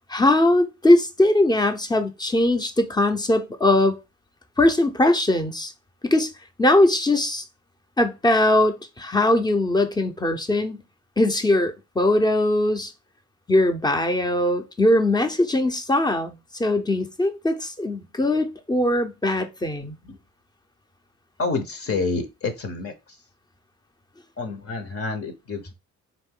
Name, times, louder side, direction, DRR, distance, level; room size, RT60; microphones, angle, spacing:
voice 1, 0.1-4.0 4.6-5.7 6.0-6.3 6.6-7.4 8.0-10.8 11.2-12.9 13.5-20.0, left 1 dB, 15° left, 0.7 m, -20 dB
voice 2, 21.4-23.2 24.4-25.7, left 3 dB, 45° left, 0.9 m, -28 dB
4.0 x 2.6 x 3.7 m
cardioid pair, 90°, 30 cm